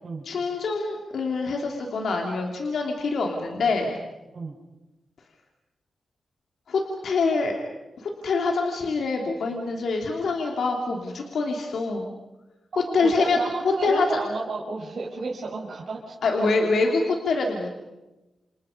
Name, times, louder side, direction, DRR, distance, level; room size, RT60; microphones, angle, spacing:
voice 1, 0.2-3.9 6.7-7.5 8.0-12.1 12.9-13.5 13.8-14.0 16.2-17.7, left 3 dB, 80° left, 1 dB, 3.2 m, -25 dB
voice 2, 12.7-16.5, right 3 dB, 65° right, -5 dB, 5.8 m, -32 dB
29.5 x 27.5 x 5.3 m, 1.0 s
cardioid pair, 50°, 0 cm